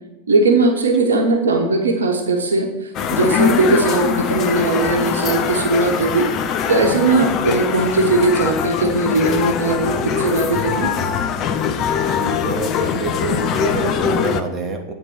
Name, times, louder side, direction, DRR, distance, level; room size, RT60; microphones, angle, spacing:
voice 1, 0.3-2.7 3.1-6.3 6.7-10.9, right 3 dB, 70° right, 3 dB, 1.1 m, -18 dB
sound 1, 2.9-14.4, left 7 dB, 35° left, 0.5 m, -22 dB
voice 2, 12.1-14.9, right 3 dB, 20° right, 1 dB, 1.2 m, -27 dB
9.0 x 3.9 x 5.6 m, 1.0 s
figure-of-eight pair, 90°, 0 cm